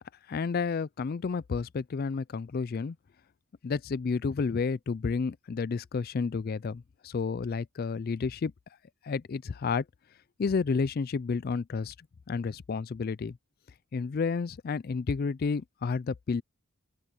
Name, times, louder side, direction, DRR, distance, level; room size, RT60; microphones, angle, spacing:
voice 1, 0.3-3.0 3.6-8.5 9.0-9.8 10.4-11.9 12.3-13.4 13.9-16.4, left 5 dB, 45° left, 0.4 m, -31 dB
open air
head